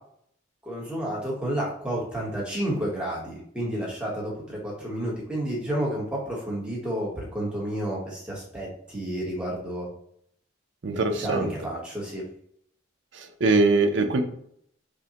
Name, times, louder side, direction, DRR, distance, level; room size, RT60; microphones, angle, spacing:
voice 1, 0.6-9.9 11.2-12.2, right 1 dB, 5° right, -4 dB, 1.0 m, -31 dB
voice 2, 10.8-11.5 13.1-14.2, right 3 dB, 65° right, 6 dB, 0.5 m, -22 dB
5.2 x 2.1 x 2.8 m, 0.67 s
head